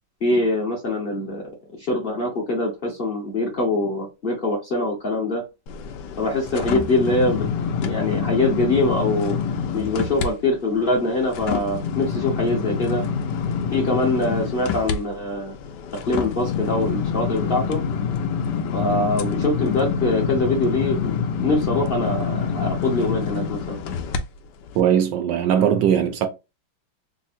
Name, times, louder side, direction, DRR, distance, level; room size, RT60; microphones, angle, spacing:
voice 1, 0.2-1.5 1.9-5.4 6.2-7.5 7.8-9.4 9.7-13.0 13.7-15.5 16.1-17.8 18.7-23.8, left 2 dB, 40° left, 0.9 m, -23 dB
sound 1, 5.7-10.3 10.7-24.2 24.7-24.8, left 6 dB, 75° left, 1.1 m, -26 dB
voice 2, 24.7-26.3, right 9 dB, 75° right, 1.2 m, -19 dB
3.6 x 2.0 x 4.2 m
omnidirectional pair, 2.1 m